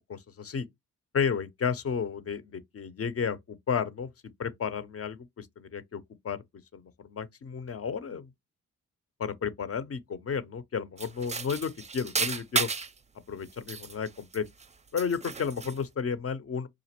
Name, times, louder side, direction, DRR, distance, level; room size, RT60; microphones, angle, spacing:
voice 1, 0.1-0.7 1.1-4.1 4.4-6.4 6.7-8.3 9.2-12.7 13.3-14.5 14.9-16.7, left 6 dB, 45° left, 0.6 m, -32 dB
sound 1, 11.0-13.0 13.5-14.7 15.0-15.8, right 4 dB, 20° right, 0.5 m, -33 dB
4.9 x 2.5 x 2.8 m
cardioid pair, 75°, 33 cm